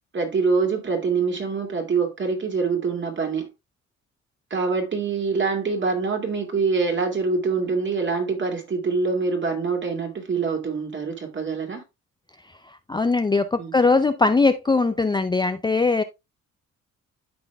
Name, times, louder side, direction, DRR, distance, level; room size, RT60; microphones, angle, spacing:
voice 1, 0.1-3.5 4.5-11.8 13.6-13.7, right 4 dB, 40° right, 2.5 m, -25 dB
voice 2, 12.9-16.0, left 3 dB, 15° left, 0.5 m, -20 dB
12.5 x 4.3 x 2.3 m
cardioid pair, 90°, 30 cm